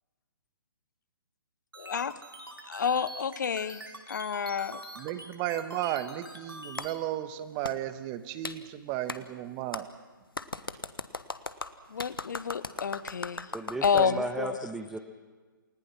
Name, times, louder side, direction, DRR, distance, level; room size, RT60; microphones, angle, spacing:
sound 1, 1.7-6.9, right 1 dB, 85° right, 3.9 m, -45 dB
voice 1, 1.8-2.1 2.7-3.8 4.1-4.8 11.9-13.5 13.8-14.6, left 6 dB, 55° left, 16 dB, 0.8 m, -29 dB
voice 2, 5.0-9.9, right 13 dB, 25° right, 12 dB, 1.2 m, -34 dB
Clapping, 6.8-6.9 7.6-7.8 8.4-8.6 9.1-9.2 9.7-9.8 10.3-14.1, left 3 dB, 80° left, 1.3 m, -37 dB
voice 3, 13.5-15.0, right 2 dB, 5° right, 6 dB, 0.9 m, -34 dB
29.0 x 19.0 x 6.0 m, 1.4 s
figure-of-eight pair, 135°, 12 cm